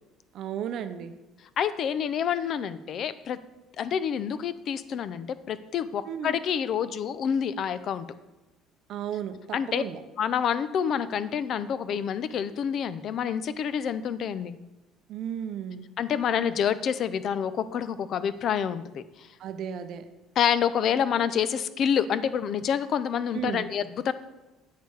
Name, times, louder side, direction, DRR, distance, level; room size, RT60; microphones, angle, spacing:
voice 1, 0.3-1.1 6.1-6.4 8.9-10.0 15.1-15.8 19.4-20.0 23.3-23.7, right 9 dB, 50° right, 10 dB, 0.6 m, -34 dB
voice 2, 1.6-3.4 3.8-8.1 9.5-9.8 10.2-14.6 16.0-19.0 20.4-24.1, left 8 dB, 40° left, 14 dB, 0.4 m, -27 dB
8.3 x 6.5 x 4.7 m, 1.0 s
cardioid pair, 160°, 0 cm